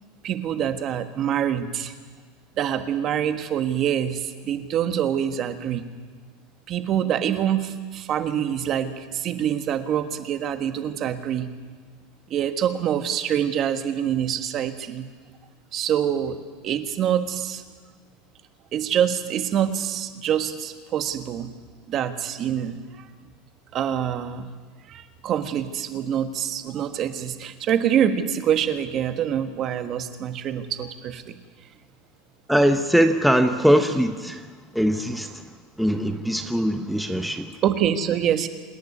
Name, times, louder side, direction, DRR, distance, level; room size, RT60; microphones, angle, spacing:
voice 1, 0.2-1.9 2.6-5.8 6.7-11.5 12.3-15.1 15.7-16.4 16.6-17.6 18.7-21.5 21.9-23.1 23.7-24.5 24.9-31.3 37.6-38.5, right 9 dB, 40° right, 8 dB, 1.5 m, -25 dB
voice 2, 32.5-34.5 34.7-35.4 35.8-37.5, equal, ahead, 6 dB, 0.9 m, -21 dB
27.0 x 10.5 x 9.7 m, 1.5 s
supercardioid pair, 140°, 0 cm